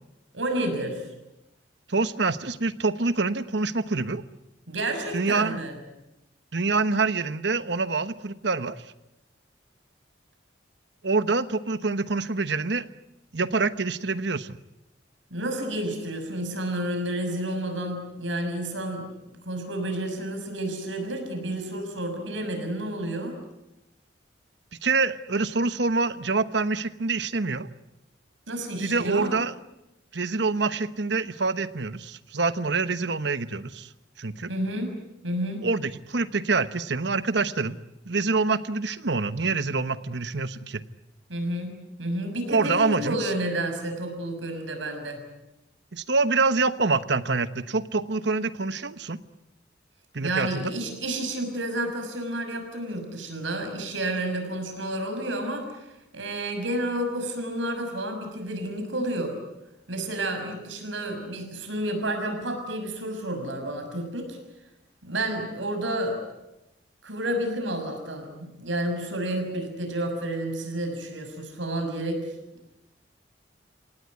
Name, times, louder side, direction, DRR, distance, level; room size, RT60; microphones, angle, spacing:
voice 1, 0.3-1.1 4.7-5.7 15.3-23.4 28.5-29.3 34.5-34.9 35.2-35.6 41.3-45.2 50.2-59.4 59.9-64.4 65.0-66.2 67.0-72.3, right 1 dB, 90° right, 5 dB, 6.3 m, -30 dB
voice 2, 1.9-4.2 5.1-5.6 6.5-8.8 11.0-12.9 13.3-14.6 24.8-27.7 28.8-29.5 30.1-33.9 34.2-34.5 35.6-37.8 38.1-40.8 42.5-43.3 45.9-49.2 50.1-50.7, right 3 dB, 70° right, 13 dB, 1.1 m, -26 dB
26.5 x 18.0 x 9.5 m, 0.91 s
head